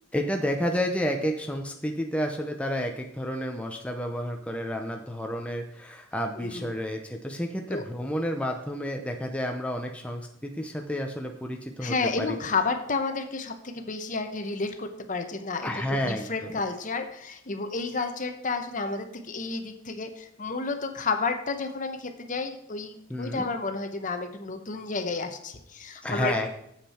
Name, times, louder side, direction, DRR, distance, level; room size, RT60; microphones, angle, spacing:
voice 1, 0.1-12.4 15.6-16.3 23.1-23.5 26.0-26.5, equal, 5° left, 3 dB, 0.7 m, -30 dB
voice 2, 6.4-6.7 7.7-7.8 11.8-15.7 16.0-26.5, left 4 dB, 40° left, 7 dB, 0.9 m, -31 dB
8.7 x 7.5 x 4.3 m, 0.76 s
head